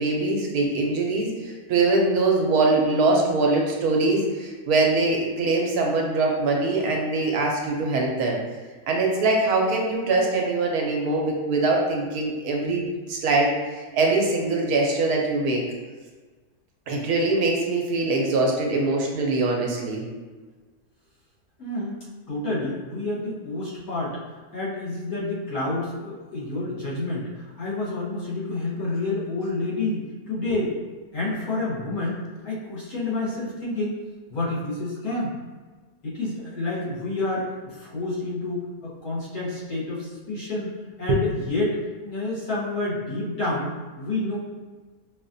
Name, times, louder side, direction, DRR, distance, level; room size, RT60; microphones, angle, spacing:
voice 1, 0.0-8.4 8.9-15.6 16.9-20.0 41.1-41.2, right 3 dB, 75° right, 0 dB, 1.1 m, -23 dB
voice 2, 21.6-24.2 24.5-30.7 31.1-34.0 34.3-35.3 36.0-40.7 41.0-41.8 42.0-44.4, left 2 dB, 70° left, -8 dB, 1.7 m, -29 dB
4.8 x 2.4 x 2.6 m, 1.4 s
omnidirectional pair, 1.6 m